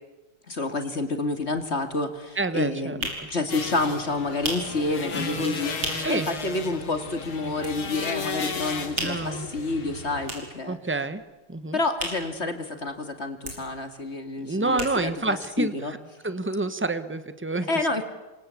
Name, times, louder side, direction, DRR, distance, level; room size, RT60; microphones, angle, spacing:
voice 1, 0.5-10.8 11.7-15.9 17.7-18.0, left 2 dB, 30° left, 8 dB, 2.3 m, -29 dB
sound 1, 1.9-6.3 6.6-6.7 7.0-8.2 8.5-13.0 13.3-15.3 15.7-15.8 15.9-16.0, right 2 dB, 70° right, 6.6 m, -36 dB
voice 2, 2.4-3.3 5.1-5.6 6.0-6.3 9.0-9.5 10.7-11.2 11.5-11.8 14.4-16.0 16.2-17.7, right 2 dB, 10° right, 11 dB, 0.6 m, -28 dB
sound 2, 3.5-10.3, left 4 dB, 80° left, 3.4 m, -34 dB
28.0 x 24.5 x 8.4 m, 1.1 s
omnidirectional pair, 2.3 m